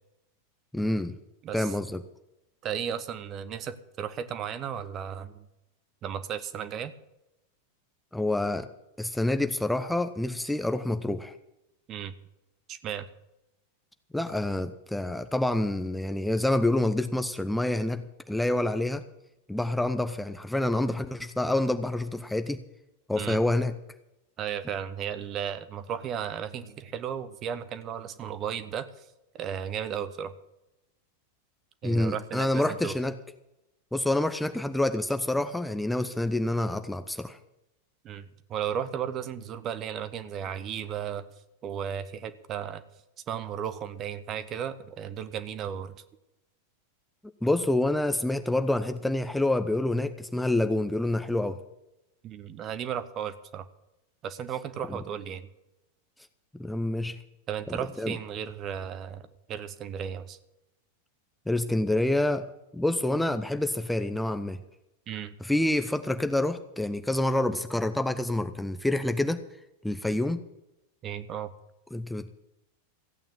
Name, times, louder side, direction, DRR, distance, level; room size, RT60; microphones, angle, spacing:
voice 1, 0.7-1.1 1.5-2.0 8.1-8.7 9.0-11.3 14.1-19.0 19.5-22.6 23.1-23.7 31.8-33.1 33.9-37.4 47.4-51.6 54.9-55.0 56.5-57.2 58.0-58.2 61.5-62.5 62.7-64.6 65.4-69.4 69.8-70.4 71.9-72.3, left 1 dB, 5° left, 8 dB, 0.7 m, -27 dB
voice 2, 2.6-5.4 6.0-6.9 11.9-12.1 12.7-13.1 23.1-23.4 24.4-28.9 29.4-30.3 31.8-32.9 38.0-41.3 41.6-42.8 43.3-45.9 52.2-53.6 54.2-55.5 57.5-60.4 65.1-65.4 71.0-71.5, right 8 dB, 30° right, 13 dB, 1.0 m, -34 dB
15.0 x 8.9 x 7.4 m, 0.92 s
figure-of-eight pair, 90°, 0 cm